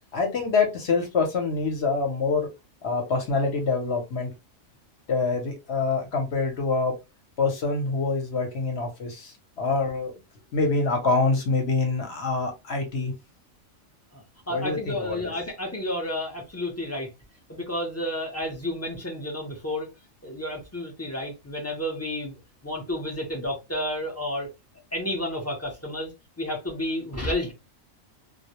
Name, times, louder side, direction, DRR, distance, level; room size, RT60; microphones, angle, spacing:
voice 1, 0.1-2.5 2.8-4.3 5.1-6.9 7.4-10.2 10.5-13.1 14.5-15.3, left 4 dB, 55° left, 0.9 m, -25 dB
voice 2, 14.1-17.1 17.5-19.9 20.2-22.3 22.6-24.5 24.9-26.1 26.4-27.5, left 1 dB, 25° left, 0.3 m, -31 dB
2.2 x 2.1 x 2.8 m
omnidirectional pair, 1.4 m